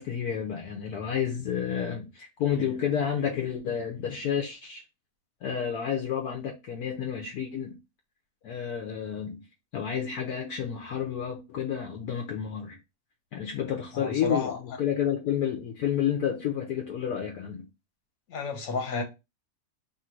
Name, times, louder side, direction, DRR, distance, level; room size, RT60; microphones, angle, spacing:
voice 1, 0.0-4.8 5.4-7.8 8.4-9.4 9.7-12.8 13.3-17.7, left 8 dB, 70° left, 1.1 m, -30 dB
voice 2, 13.9-14.6 18.3-19.0, left 4 dB, 50° left, 1.3 m, -31 dB
3.0 x 2.5 x 4.3 m
omnidirectional pair, 1.7 m